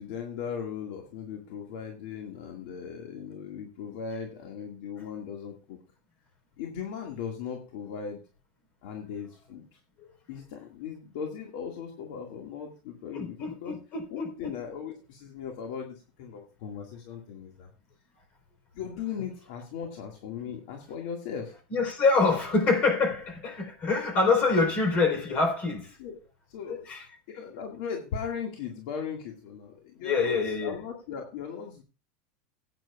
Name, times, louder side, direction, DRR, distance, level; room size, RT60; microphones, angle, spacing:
voice 1, 0.0-5.8 6.6-8.2 8.8-9.6 10.3-13.8 14.1-17.7 18.7-21.5 26.0-26.2 26.5-26.8 27.3-31.8, left 7 dB, 70° left, 1.9 m, -38 dB
voice 2, 13.1-14.3 21.7-26.0 26.7-27.0 30.0-30.8, left 3 dB, 40° left, 4.1 m, -25 dB
18.0 x 9.0 x 2.4 m
supercardioid pair, 135°, 4 cm